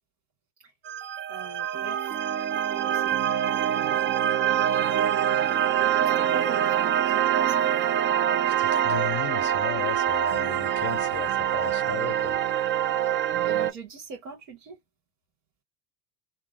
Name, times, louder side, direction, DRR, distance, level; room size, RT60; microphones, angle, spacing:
sound 1, 0.8-13.7, right 10 dB, 30° right, 0.4 m, -25 dB
voice 1, 1.3-2.0 2.7-3.3 3.6-4.2 5.2-5.5 5.8-7.7 13.4-14.8, right 5 dB, 75° right, 1.4 m, -42 dB
voice 2, 8.6-12.4, left 12 dB, 30° left, 0.5 m, -36 dB
3.5 x 2.0 x 2.3 m
hypercardioid pair, 80°, 40 cm